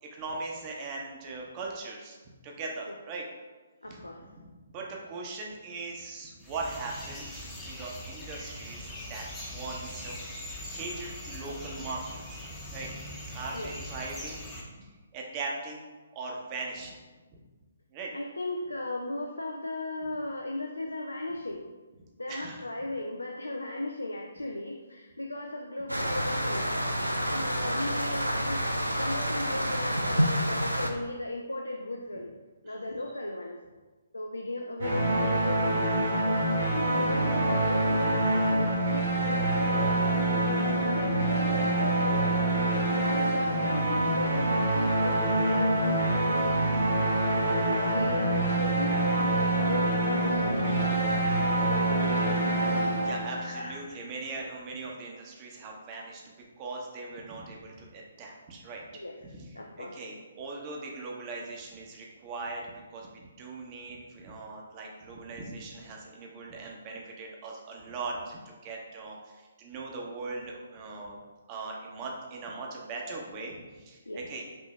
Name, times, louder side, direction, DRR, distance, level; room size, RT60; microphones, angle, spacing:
voice 1, 0.0-2.2 2.4-3.3 3.8-4.3 4.7-10.2 10.7-12.4 12.7-12.9 13.3-14.9 15.1-15.8 16.1-17.0 17.9-18.1 22.3-22.6 32.7-32.8 50.7-51.0 53.0-58.9 59.2-71.2 71.5-74.4, right 3 dB, 25° right, -1 dB, 0.8 m, -40 dB
voice 2, 3.8-4.2 13.5-13.7 18.1-21.6 22.2-26.7 27.1-28.6 28.9-32.3 32.6-33.6 34.1-40.2 40.7-42.4 42.9-46.6 47.2-50.9 51.7-52.4 53.4-54.0 58.9-59.1 59.6-60.0 74.1-74.2, left 1 dB, 75° left, 2 dB, 0.4 m, -36 dB
sound 1, 6.4-14.6, left 1 dB, 5° left, 0.8 m, -41 dB
sound 2, 25.9-30.9, equal, 90° right, 0.4 m, -28 dB
sound 3, 34.8-53.7, right 1 dB, 55° right, 1.4 m, -26 dB
5.3 x 2.7 x 3.2 m, 1.3 s
figure-of-eight pair, 135°, 0 cm